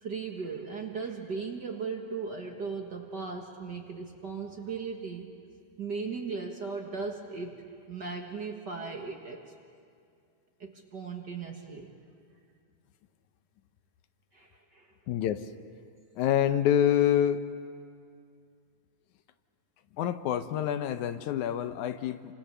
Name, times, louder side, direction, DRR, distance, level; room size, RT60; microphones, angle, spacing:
voice 1, 0.0-5.3 5.8-9.4 10.6-11.9 14.3-14.9, right 5 dB, 40° right, 2 dB, 1.8 m, -37 dB
voice 2, 15.1-15.5 16.2-17.4 20.0-22.3, left 10 dB, 80° left, 10 dB, 2.2 m, -26 dB
29.0 x 26.0 x 6.8 m, 2.3 s
omnidirectional pair, 3.5 m